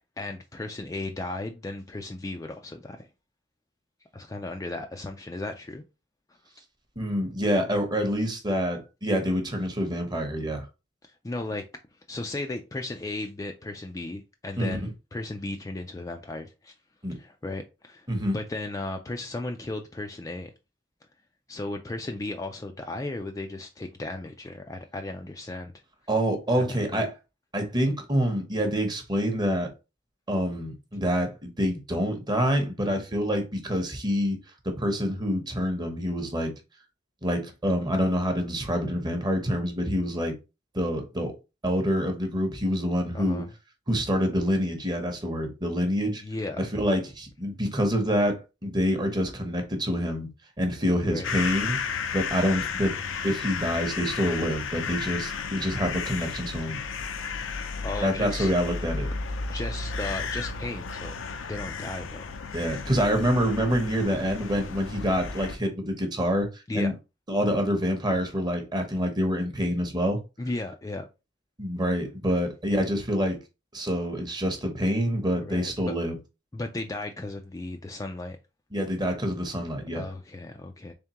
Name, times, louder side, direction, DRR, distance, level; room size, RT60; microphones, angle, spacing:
voice 1, 0.2-3.1 4.1-5.8 11.2-11.6 12.1-16.7 17.1-18.1 18.3-20.5 21.5-25.7 26.5-27.1 43.1-43.5 46.2-46.6 51.0-51.3 57.8-58.5 59.5-61.1 61.5-62.3 64.0-64.1 66.7-66.9 70.4-71.1 75.3-75.9 76.5-78.4 79.9-80.9, left 2 dB, 15° left, 0.3 m, -35 dB
voice 2, 7.0-10.6 14.6-14.8 17.0-17.2 18.1-18.4 26.1-27.1 27.5-29.7 30.3-34.4 34.6-36.5 37.2-40.3 40.7-41.3 41.6-43.4 43.9-46.2 46.6-50.3 50.6-51.8 52.1-52.9 53.2-56.8 58.0-59.1 62.5-66.5 66.7-66.9 67.3-70.2 71.6-73.4 73.7-76.1 78.7-80.1, equal, 20° right, 0.9 m, -26 dB
sound 1, 51.2-65.6, left 5 dB, 80° left, 0.5 m, -33 dB
3.6 x 3.5 x 2.9 m
head